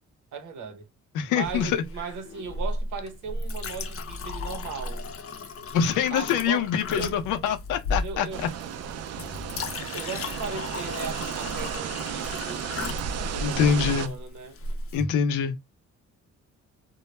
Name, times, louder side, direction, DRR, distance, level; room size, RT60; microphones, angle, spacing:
voice 1, 0.3-0.9 1.3-5.0 6.1-6.7 6.9-7.2 8.0-8.5 9.9-12.7 13.3-14.6 14.9-15.1, right 5 dB, 75° right, 0.9 m, -37 dB
voice 2, 1.1-1.8 5.7-8.3 9.8-10.1 13.4-14.1 14.9-15.6, left 7 dB, 90° left, 0.6 m, -25 dB
Chink clink, 1.4-15.0, left 2 dB, 50° left, 0.6 m, -35 dB
sound 1, 8.3-14.1, right 7 dB, 55° right, 0.4 m, -33 dB
2.2 x 2.0 x 3.1 m
cardioid pair, 90°, 30 cm